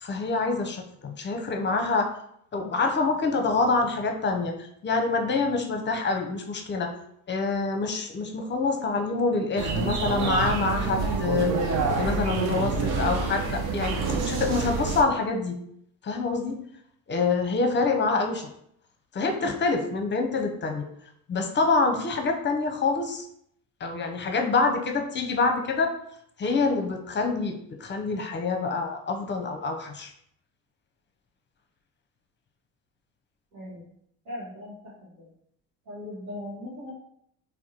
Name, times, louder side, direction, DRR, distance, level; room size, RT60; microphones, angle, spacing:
voice 1, 0.0-2.1 2.5-6.9 7.3-15.6 16.0-16.6 17.1-18.5 19.1-20.9 21.3-23.2 23.8-25.9 26.4-30.1, left 3 dB, 25° left, 4 dB, 0.6 m, -26 dB
sound 1, 9.6-15.0, right 4 dB, 55° right, 0.6 m, -27 dB
voice 2, 33.5-33.9 34.2-34.7 35.2-35.3 35.9-36.9, left 1 dB, 80° right, -10 dB, 1.2 m, -38 dB
3.5 x 2.3 x 2.8 m, 0.71 s
hypercardioid pair, 60°, 44 cm